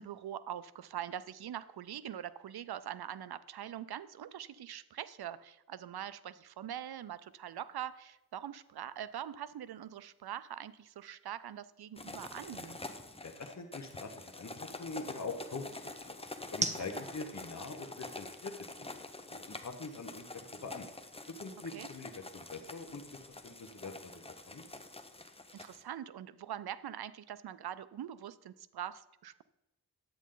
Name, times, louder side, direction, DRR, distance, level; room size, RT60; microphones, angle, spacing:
voice 1, 0.0-12.8 16.8-17.1 21.7-21.9 25.5-29.4, right 10 dB, 75° right, 16 dB, 0.5 m, -43 dB
sound 1, 6.8-21.0, right 2 dB, 20° right, 0.7 m, -48 dB
sound 2, 12.0-25.8, left 2 dB, 15° left, 0.8 m, -47 dB
voice 2, 13.2-15.7 16.0-16.1 16.5-18.5 18.8-19.0 19.3-20.2 20.6-20.9 21.4-24.8, left 3 dB, 45° left, 3 dB, 1.1 m, -44 dB
10.5 x 8.3 x 3.8 m, 0.98 s
cardioid pair, 55°, 38 cm